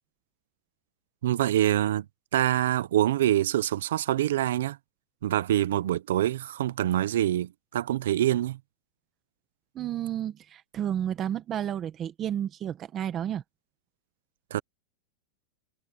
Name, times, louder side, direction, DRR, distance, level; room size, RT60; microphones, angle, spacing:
voice 1, 1.2-2.1 2.3-4.8 5.2-8.6 14.5-14.6, right 12 dB, 85° right, 0.6 m, -25 dB
voice 2, 9.7-13.4, right 10 dB, 25° right, 1.4 m, -31 dB
supercardioid pair, 170°, 0 cm